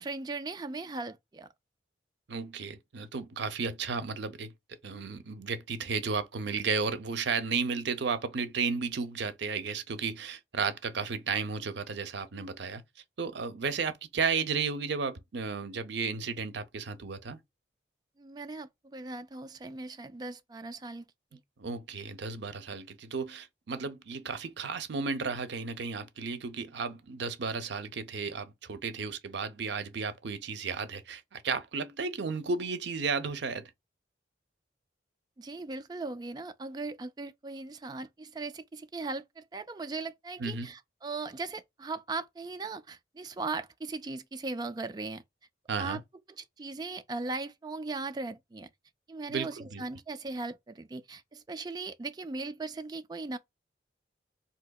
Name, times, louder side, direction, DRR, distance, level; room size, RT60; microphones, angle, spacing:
voice 1, 0.0-1.5 18.2-21.0 21.3-21.4 35.4-45.2 45.8-46.0 46.4-48.7 49.1-53.4, right 3 dB, 20° right, 0.3 m, -38 dB
voice 2, 2.3-4.5 4.8-12.8 13.2-17.4 21.6-33.7 40.4-40.7 45.7-46.0 49.3-49.8, right 5 dB, 70° right, 0.6 m, -33 dB
3.8 x 2.8 x 2.2 m
head